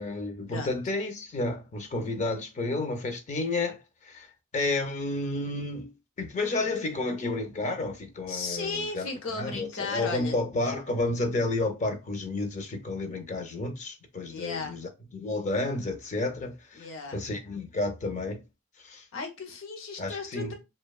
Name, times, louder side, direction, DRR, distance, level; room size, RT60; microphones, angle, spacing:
voice 1, 0.0-4.3 4.5-5.9 6.2-18.4 18.8-19.1 20.0-20.5, left 2 dB, 35° left, 0.5 m, -31 dB
voice 2, 8.3-10.3 14.3-14.8 16.8-17.2 19.1-20.5, left 4 dB, 75° left, 0.7 m, -35 dB
2.7 x 2.2 x 2.3 m
head